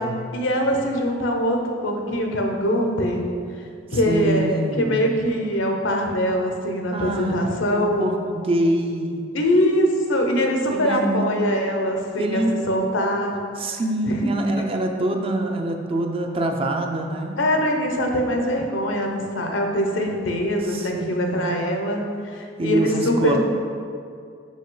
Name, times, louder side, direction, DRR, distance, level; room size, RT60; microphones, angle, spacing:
voice 1, 0.3-3.3 3.9-8.0 9.3-13.4 13.7-13.8 14.0-14.3 17.4-23.4, equal, 85° left, 3 dB, 0.8 m, -23 dB
voice 2, 3.9-5.1 6.9-9.2 10.7-11.3 12.2-12.6 13.6-17.4 20.6-21.7 22.6-23.4, right 1 dB, 30° right, 3 dB, 0.5 m, -25 dB
5.7 x 5.3 x 3.8 m, 2.3 s
head